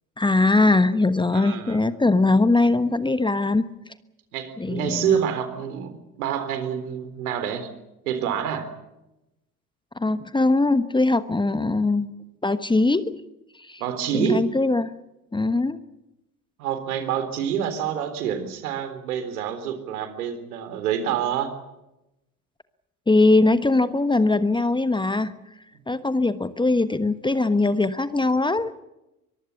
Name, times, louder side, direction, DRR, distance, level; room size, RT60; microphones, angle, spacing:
voice 1, 0.2-3.7 4.6-5.1 10.0-12.1 12.4-13.1 13.7-13.8 14.1-14.9 15.3-15.8 23.1-25.3 25.9-28.7, left 2 dB, 10° left, 13 dB, 1.2 m, -21 dB
voice 2, 1.3-1.8 4.3-7.7 8.1-8.7 13.8-14.4 16.6-21.5, right 8 dB, 75° right, 10 dB, 3.8 m, -27 dB
24.0 x 22.5 x 7.2 m, 0.94 s
hypercardioid pair, 70°, 45 cm